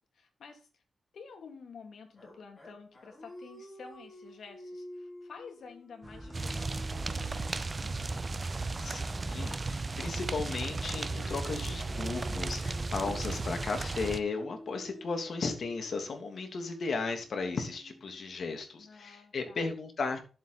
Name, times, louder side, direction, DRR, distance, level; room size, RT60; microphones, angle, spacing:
voice 1, 0.1-0.8 1.1-8.0 18.8-19.7, left 5 dB, 75° left, 2.8 m, -51 dB
sound 1, 2.2-10.2 10.8-18.8, left 1 dB, 30° left, 6.0 m, -51 dB
sound 2, 6.0-13.8, right 1 dB, 15° right, 2.1 m, -46 dB
sound 3, 6.3-14.2, right 3 dB, 35° right, 0.8 m, -35 dB
voice 2, 8.8-20.2, left 4 dB, 60° left, 2.9 m, -35 dB
11.5 x 7.7 x 4.2 m
wide cardioid pair, 105°, 0 cm